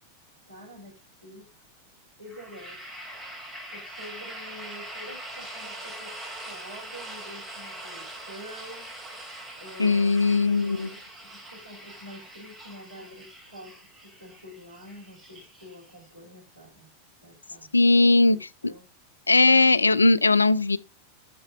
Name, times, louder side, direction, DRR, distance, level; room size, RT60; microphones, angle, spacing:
voice 1, 0.5-1.6 2.2-3.1 3.7-8.9 9.6-16.9 17.2-17.7 18.3-18.9, left 1 dB, 85° right, 5.1 m, -47 dB
sound 1, 2.3-16.1, right 1 dB, 10° right, 2.7 m, -42 dB
voice 2, 9.8-10.9 17.7-18.4 18.6-18.7 19.3-20.8, left 3 dB, 80° left, 0.4 m, -19 dB
6.9 x 6.5 x 5.3 m
figure-of-eight pair, 90°, 0 cm